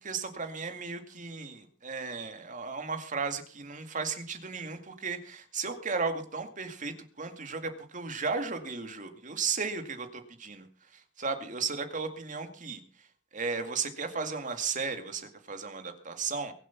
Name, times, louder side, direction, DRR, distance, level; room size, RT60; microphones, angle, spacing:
voice 1, 0.0-10.7 10.9-12.8 13.3-16.5, right 5 dB, 45° right, 7 dB, 2.2 m, -35 dB
22.5 x 7.7 x 5.9 m, 0.43 s
head